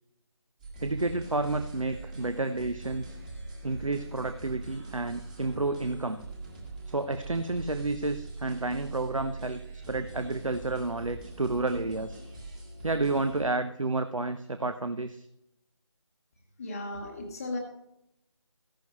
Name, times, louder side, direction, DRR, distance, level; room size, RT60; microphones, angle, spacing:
sound 1, 0.6-13.5, right 2 dB, 15° right, 1.5 m, -42 dB
voice 1, 0.8-3.2 3.6-6.2 6.9-12.2 12.8-15.3, right 2 dB, 85° right, 9 dB, 0.8 m, -30 dB
voice 2, 16.6-17.6, left 2 dB, 15° left, -4 dB, 1.0 m, -35 dB
15.0 x 11.5 x 3.1 m, 0.81 s
figure-of-eight pair, 165°, 16 cm